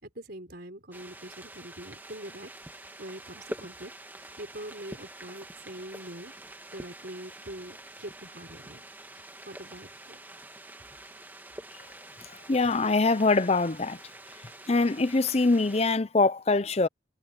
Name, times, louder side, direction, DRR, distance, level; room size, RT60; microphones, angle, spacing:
voice 1, 0.0-2.5 3.0-3.9 4.4-6.3 6.7-8.8 9.1-10.2, right 1 dB, 55° right, 4.8 m, -43 dB
sound 1, 0.9-16.0, right 1 dB, 10° right, 1.8 m, -46 dB
voice 2, 12.5-14.0 14.7-16.9, left 3 dB, 30° left, 0.6 m, -23 dB
head